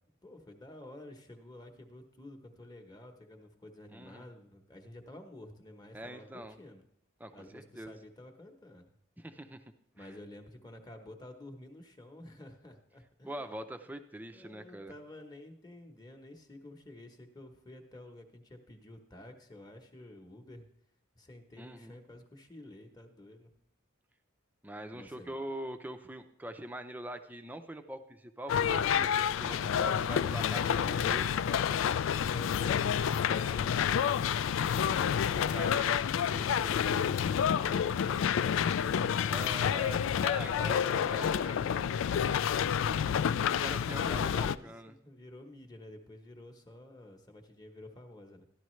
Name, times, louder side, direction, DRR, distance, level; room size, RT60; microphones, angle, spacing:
voice 1, 0.2-6.8 7.3-8.9 9.9-13.6 14.3-20.7 21.1-23.5 24.9-25.3 30.5-31.8 42.6-48.5, left 1 dB, 20° left, 4 dB, 1.0 m, -50 dB
voice 2, 3.9-4.2 5.9-6.6 7.2-8.0 9.2-9.6 10.0-10.1 13.3-14.9 21.6-22.0 24.6-30.8 31.1-31.3 35.2-36.0 39.2-41.7 43.6-44.9, right 1 dB, 10° right, 7 dB, 0.5 m, -43 dB
sound 1, 28.5-44.6, left 8 dB, 75° left, 0.3 m, -29 dB
13.5 x 11.0 x 3.2 m, 0.74 s
head